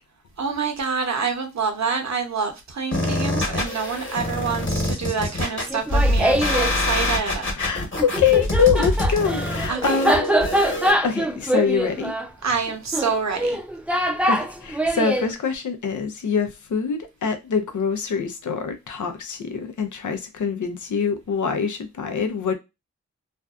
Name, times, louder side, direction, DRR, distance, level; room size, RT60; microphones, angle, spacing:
voice 1, 0.4-7.5 9.7-10.0 12.4-13.6, right 5 dB, 65° right, 0.8 m, -27 dB
sound 1, 2.9-10.9, left 1 dB, 40° left, 1.1 m, -25 dB
Laughter, 5.7-6.8 8.0-15.3, right 1 dB, 5° right, 0.4 m, -23 dB
voice 2, 7.6-12.1 14.3-22.5, left 6 dB, 85° left, 0.6 m, -24 dB
2.5 x 2.2 x 2.3 m
cardioid pair, 50°, 30 cm